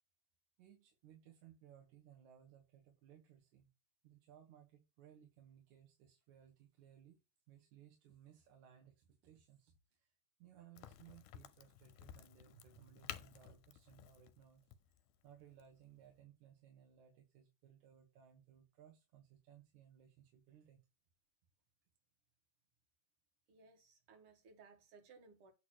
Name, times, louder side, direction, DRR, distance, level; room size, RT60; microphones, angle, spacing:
voice 1, 0.6-3.7 4.0-7.2 7.5-10.1 10.4-14.7 15.2-20.8, right 10 dB, 70° right, 2.5 m, -63 dB
Crack, 10.8-16.2, left 12 dB, 85° left, 2.2 m, -54 dB
voice 2, 23.5-25.5, right 4 dB, 50° right, 2.1 m, -62 dB
8.6 x 3.0 x 6.2 m
omnidirectional pair, 3.6 m